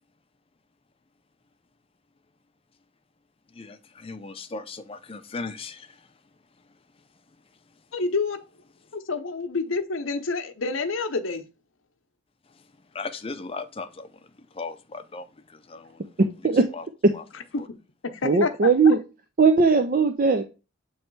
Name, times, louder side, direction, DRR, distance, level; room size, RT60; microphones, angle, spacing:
voice 1, 3.5-6.1 12.9-14.2 14.5-16.1 16.7-16.9 17.1-17.2 17.6-17.7, left 3 dB, 25° left, 0.5 m, -37 dB
voice 2, 7.9-8.4 8.9-11.5 17.5-17.6 18.0-18.9, left 4 dB, 65° left, 0.8 m, -28 dB
voice 3, 18.2-19.0 19.4-20.4, right 4 dB, 40° right, 0.5 m, -19 dB
7.6 x 3.2 x 4.6 m
head